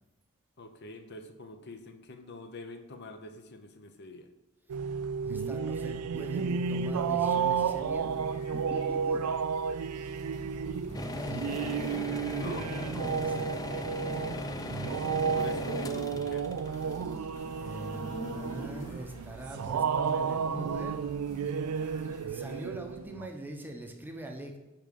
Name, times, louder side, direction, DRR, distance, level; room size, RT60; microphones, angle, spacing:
voice 1, 0.6-4.3 12.4-12.7 14.3-16.5, left 2 dB, 50° left, 6 dB, 0.8 m, -45 dB
sound 1, 4.7-23.3, right 6 dB, 85° right, 0.4 m, -32 dB
voice 2, 5.3-9.3 10.8-11.5 12.3-13.5 17.6-21.0 22.3-24.6, right 1 dB, 10° right, 3 dB, 0.8 m, -43 dB
sound 2, 6.2-22.6, equal, 35° left, 2.1 m, -49 dB
sound 3, 10.9-17.9, left 2 dB, 15° left, 0.4 m, -39 dB
10.0 x 3.7 x 6.8 m, 1.0 s
head